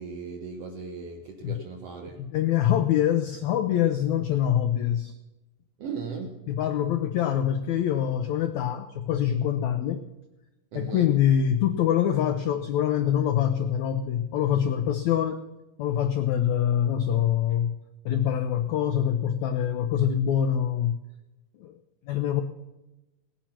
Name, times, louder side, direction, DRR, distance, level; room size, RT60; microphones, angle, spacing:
voice 1, 0.0-2.2 5.8-6.4 10.7-11.1, right 5 dB, 70° right, 4 dB, 1.5 m, -37 dB
voice 2, 2.2-5.2 6.5-10.0 10.7-15.4 15.8-17.8 18.0-21.0 21.6-21.8 22.1-22.4, left 10 dB, 85° left, 8 dB, 1.6 m, -25 dB
17.5 x 9.8 x 5.8 m, 1.0 s
omnidirectional pair, 4.1 m